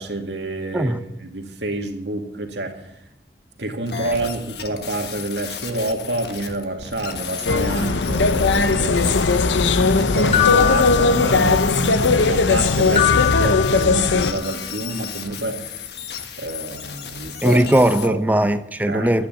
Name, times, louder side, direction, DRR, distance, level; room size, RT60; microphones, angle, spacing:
voice 1, 0.0-0.9 1.2-2.9 3.6-9.0 10.0-15.6 16.4-17.6 18.0-18.2 18.9-19.1, right 2 dB, 75° right, 2.2 m, -28 dB
sound 1, 3.9-13.9 14.2-18.1, left 7 dB, 65° left, 1.5 m, -34 dB
sound 2, 7.4-14.3, left 4 dB, 90° left, 0.7 m, -18 dB
sound 3, 10.3-11.8 13.0-14.4, left 13 dB, 35° left, 2.0 m, -22 dB
voice 2, 17.4-19.3, right 1 dB, 10° right, 0.5 m, -18 dB
11.5 x 9.5 x 9.6 m
head